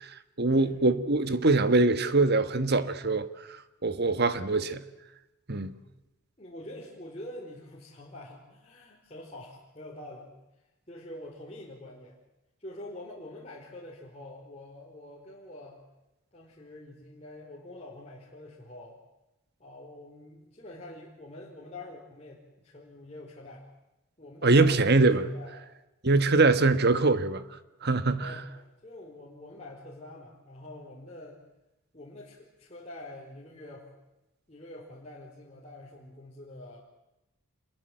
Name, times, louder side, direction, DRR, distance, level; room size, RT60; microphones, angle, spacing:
voice 1, 0.4-3.3 3.8-4.8 5.5-5.7 24.4-25.2 26.0-27.4 27.8-28.3, right 3 dB, 45° right, 1.4 m, -23 dB
voice 2, 6.4-10.3 10.9-12.2 12.6-15.8 16.3-19.0 19.6-23.6 24.2-25.7 28.0-31.4 31.9-33.9 34.5-36.8, left 1 dB, 30° left, 4.5 m, -46 dB
27.5 x 22.5 x 7.8 m
head